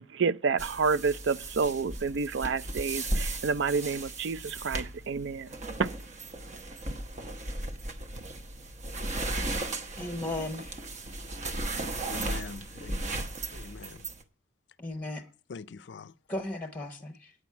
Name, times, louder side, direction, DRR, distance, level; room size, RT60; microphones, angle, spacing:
voice 1, 0.0-5.5 5.8-5.9, right 5 dB, 70° right, 0.4 m, -29 dB
sound 1, 0.6-14.2, right 2 dB, 40° right, 0.9 m, -36 dB
voice 2, 10.0-10.8 14.8-15.3 16.3-17.3, left 2 dB, 10° left, 1.0 m, -36 dB
voice 3, 12.1-14.1 15.5-16.1, left 4 dB, 65° left, 0.4 m, -43 dB
9.1 x 6.1 x 8.2 m
head